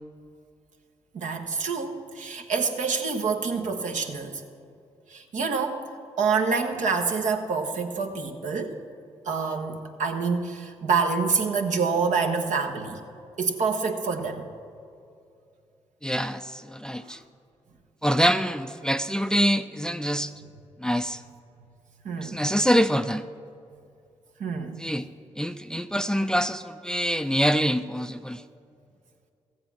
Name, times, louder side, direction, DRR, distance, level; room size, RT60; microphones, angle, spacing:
voice 1, 1.1-4.4 5.1-5.9 6.2-8.8 9.2-13.0 13.4-14.5 17.0-17.2 22.0-22.4 24.4-24.8, right 5 dB, 70° right, 3 dB, 1.2 m, -27 dB
voice 2, 16.0-17.2 18.0-20.3 20.8-21.2 22.2-23.2 24.8-25.1 25.4-28.4, equal, 5° left, 10 dB, 0.5 m, -25 dB
14.0 x 7.8 x 6.0 m, 2.5 s
hypercardioid pair, 40°, 13 cm